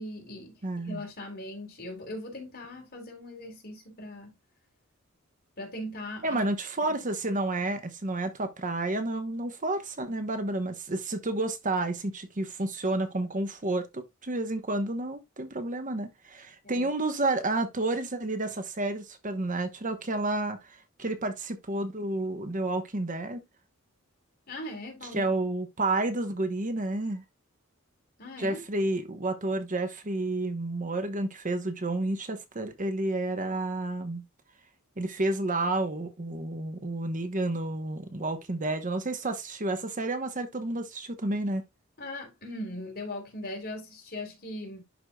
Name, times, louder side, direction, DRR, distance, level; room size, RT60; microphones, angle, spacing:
voice 1, 0.0-0.6 0.8-4.3 5.6-6.4 6.8-7.0 16.6-16.9 24.5-25.3 28.2-28.6 42.0-44.8, left 1 dB, 45° left, 3.4 m, -39 dB
voice 2, 0.6-1.0 6.2-23.4 25.1-27.2 28.4-34.2 35.0-41.6, right 2 dB, 40° right, 1.0 m, -30 dB
11.5 x 4.7 x 2.3 m
head